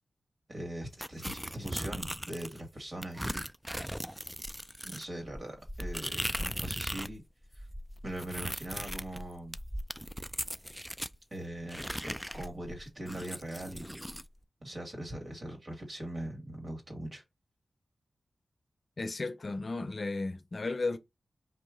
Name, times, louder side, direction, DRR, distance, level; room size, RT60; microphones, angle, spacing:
voice 1, 0.5-3.3 4.8-7.2 7.6-7.7 8.0-9.6 11.3-14.0 14.6-17.2, right 1 dB, 50° right, 2.3 m, -41 dB
sound 1, 1.0-2.6 3.0-7.2 7.4-11.2 11.7-14.3, equal, 5° right, 0.3 m, -38 dB
voice 2, 19.0-21.0, left 3 dB, 55° left, 0.6 m, -34 dB
4.4 x 2.9 x 3.9 m
cardioid pair, 40°, 0 cm